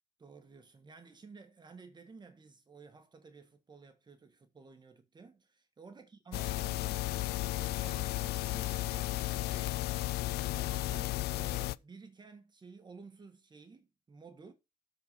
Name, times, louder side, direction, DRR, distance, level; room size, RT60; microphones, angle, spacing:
voice 1, 0.2-14.5, right 4 dB, 25° right, 1.7 m, -54 dB
sound 1, 6.3-11.7, left 17 dB, 70° left, 0.4 m, -34 dB
8.0 x 4.6 x 6.9 m
cardioid pair, 110°, 17 cm